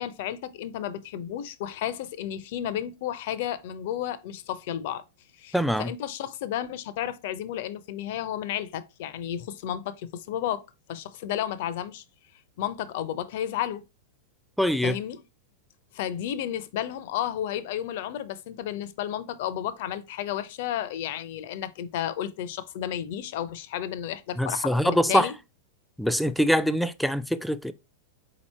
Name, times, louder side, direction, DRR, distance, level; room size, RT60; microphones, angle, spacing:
voice 1, 0.0-5.0 5.4-10.6 10.9-12.0 12.6-13.8 14.8-15.2 15.9-25.3, left 11 dB, 60° left, 0.5 m, -32 dB
voice 2, 5.5-5.9 14.6-15.0 24.4-25.3 26.0-27.7, equal, ahead, 0.4 m, -24 dB
4.1 x 2.9 x 4.3 m
hypercardioid pair, 100°, 0 cm